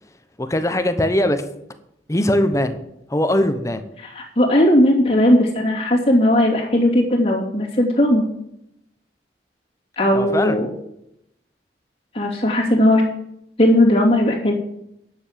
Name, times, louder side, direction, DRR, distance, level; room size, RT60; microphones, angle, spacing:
voice 1, 0.4-1.4 2.1-2.8 3.1-3.8 10.1-10.6, left 1 dB, 15° left, 9 dB, 0.9 m, -20 dB
voice 2, 4.0-8.2 10.0-10.7 12.1-13.0 13.6-14.5, left 1 dB, 35° left, -3 dB, 2.8 m, -17 dB
10.0 x 6.8 x 7.4 m, 0.79 s
head